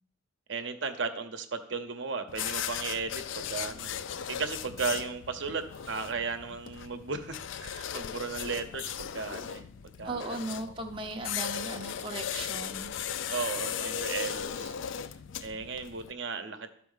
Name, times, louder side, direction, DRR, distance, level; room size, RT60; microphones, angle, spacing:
voice 1, 0.5-4.0 4.3-9.7 10.0-10.4 13.3-14.7 15.4-16.7, right 5 dB, 65° right, 7 dB, 0.8 m, -35 dB
sound 1, 2.3-16.1, left 9 dB, 70° left, 0.4 m, -37 dB
voice 2, 10.0-12.9, right 2 dB, 25° right, 3 dB, 0.6 m, -37 dB
12.5 x 4.3 x 5.6 m, 0.65 s
head